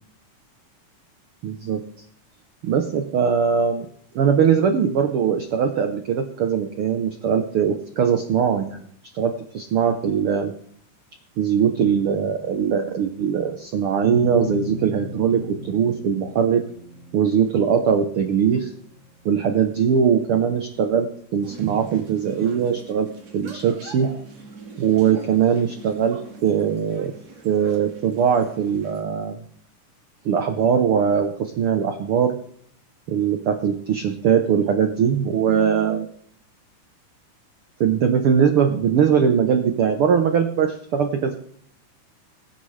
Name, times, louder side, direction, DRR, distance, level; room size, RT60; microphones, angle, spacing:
voice 1, 1.4-1.8 2.6-3.9 4.1-8.8 9.1-10.5 11.4-16.6 17.1-18.7 19.2-23.1 23.3-24.1 24.8-27.1 27.4-29.4 30.2-32.3 33.1-36.1 37.8-41.3, right 7 dB, 80° right, 6 dB, 1.2 m, -21 dB
sound 1, 14.0-20.6, left 3 dB, 35° right, 1.3 m, -36 dB
sound 2, 21.4-29.0, right 4 dB, 55° right, 3.6 m, -43 dB
22.0 x 9.7 x 3.3 m, 0.63 s
omnidirectional pair, 3.8 m